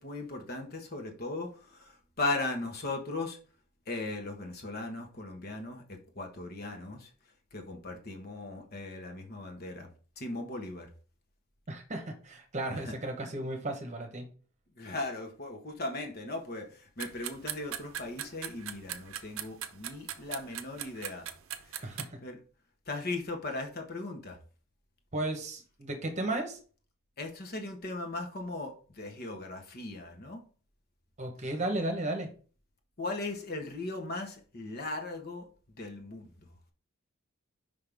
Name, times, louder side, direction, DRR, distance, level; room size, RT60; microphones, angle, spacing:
voice 1, 0.0-3.4 3.9-7.1 7.5-9.9 10.2-10.9 12.7-13.0 14.8-21.3 21.6-22.0 22.2-22.4 22.9-24.4 27.2-30.4 33.0-35.5 35.8-36.3, left 2 dB, 45° left, 1.3 m, -38 dB
voice 2, 11.7-14.3 21.8-22.2 25.1-26.6 31.2-32.3, right 1 dB, 35° right, 1.1 m, -34 dB
sound 1, 17.0-22.0, right 10 dB, 75° right, 0.6 m, -40 dB
5.7 x 5.3 x 3.4 m
head